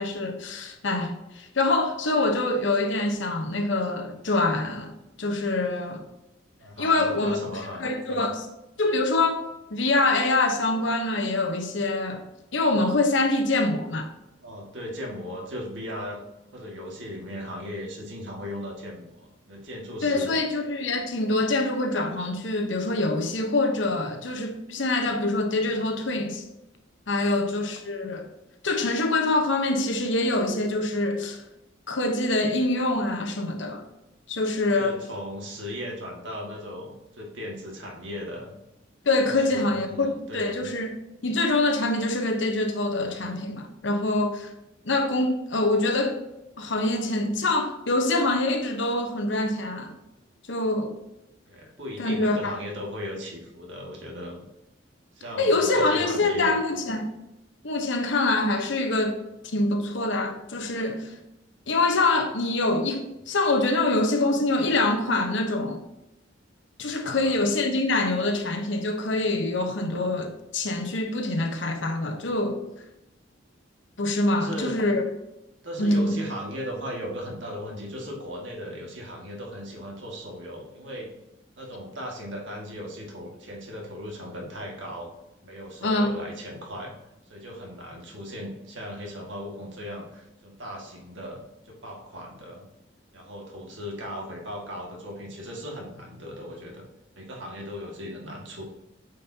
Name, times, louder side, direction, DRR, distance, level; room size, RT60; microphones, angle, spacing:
voice 1, 0.0-4.9 5.2-6.0 6.8-7.4 7.8-8.5 8.8-12.2 12.5-14.1 20.0-26.4 27.1-28.2 28.6-31.4 31.9-33.8 34.3-35.0 39.0-40.9 41.2-44.5 44.8-46.2 46.6-50.0 50.5-51.0 52.0-52.6 55.4-57.1 57.6-59.2 59.5-61.2 61.7-65.8 66.8-72.6 74.0-75.0 75.8-76.2 85.8-86.1, left 2 dB, 70° left, 1.0 m, -25 dB
voice 2, 6.6-8.3 14.4-16.2 16.5-20.3 27.2-27.5 34.7-38.6 39.3-40.7 51.5-54.5 55.1-56.5 66.8-67.4 74.3-74.8 75.6-81.1 81.6-85.1 85.4-87.0 87.3-92.7 93.1-96.8 97.2-98.6, equal, 70° right, 2.0 m, -37 dB
9.0 x 5.3 x 2.8 m
head